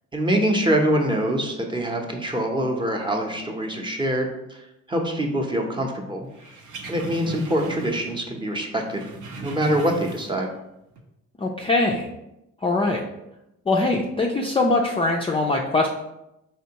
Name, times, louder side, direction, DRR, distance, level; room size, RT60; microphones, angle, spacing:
voice 1, 0.1-4.6 4.9-6.3 6.9-9.0 9.4-10.5, right 1 dB, 15° right, 2 dB, 0.7 m, -24 dB
sound 1, 6.3-8.3 8.5-10.5 10.9-11.0, right 3 dB, 75° right, 0.7 m, -39 dB
voice 2, 11.4-12.1 12.6-13.0 13.7-15.9, left 2 dB, 20° left, 0 dB, 0.4 m, -22 dB
4.3 x 3.4 x 2.9 m, 0.89 s
cardioid pair, 90°, 30 cm